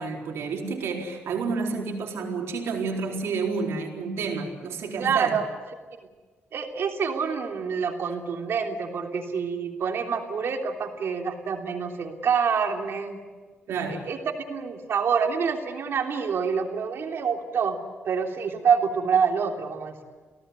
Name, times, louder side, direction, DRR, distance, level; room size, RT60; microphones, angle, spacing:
voice 1, 0.0-5.4 13.7-14.1, right 4 dB, 90° right, 1 dB, 4.2 m, -30 dB
voice 2, 5.0-5.5 6.5-13.2 13.9-14.2 14.5-17.8 18.0-20.0, right 6 dB, 70° right, 2 dB, 3.3 m, -26 dB
29.5 x 17.5 x 8.3 m, 1.4 s
cardioid pair, 105°, 4 cm